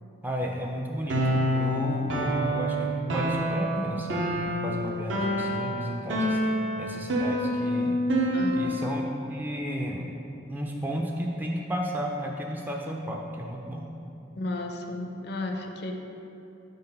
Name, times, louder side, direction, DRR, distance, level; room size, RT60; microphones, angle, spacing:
voice 1, 0.2-4.3 4.6-6.4 6.8-8.0 8.5-10.1 10.5-13.9, equal, 10° right, 0 dB, 0.3 m, -33 dB
sound 1, 1.1-9.0, equal, 65° right, 0.6 m, -27 dB
voice 2, 8.3-8.8 14.4-15.9, left 2 dB, 55° left, 3 dB, 0.5 m, -33 dB
4.6 x 3.9 x 5.4 m, 2.8 s
head